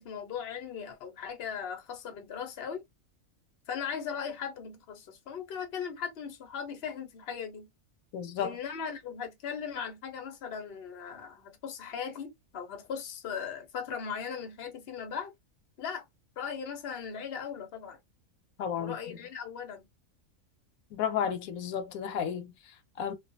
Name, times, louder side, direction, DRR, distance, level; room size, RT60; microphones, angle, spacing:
voice 1, 0.0-2.8 3.7-7.7 8.4-15.3 15.8-16.0 16.4-18.0 18.8-19.9, left 7 dB, 50° left, 0.9 m, -38 dB
voice 2, 8.1-8.6 18.6-19.2 20.9-23.1, left 8 dB, 90° left, 1.1 m, -33 dB
2.4 x 2.3 x 2.5 m
omnidirectional pair, 1.5 m